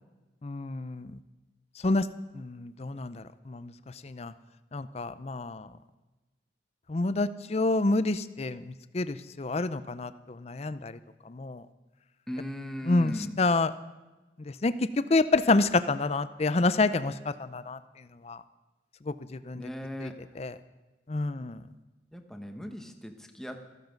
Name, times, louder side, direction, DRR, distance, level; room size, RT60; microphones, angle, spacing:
voice 1, 0.4-1.2 1.8-2.1 2.3-3.7 4.0-4.3 4.7-5.7 6.9-11.0 11.3-11.6 12.9-13.7 14.5-17.1 17.4-17.8 18.2-18.4 19.1-19.7 20.0-20.1 20.4-20.5 21.1-21.6, left 3 dB, 35° left, 13 dB, 0.5 m, -28 dB
voice 2, 12.3-13.4 19.5-20.4 22.1-23.7, equal, 5° left, 5 dB, 1.0 m, -38 dB
14.0 x 14.0 x 5.2 m, 1.1 s
head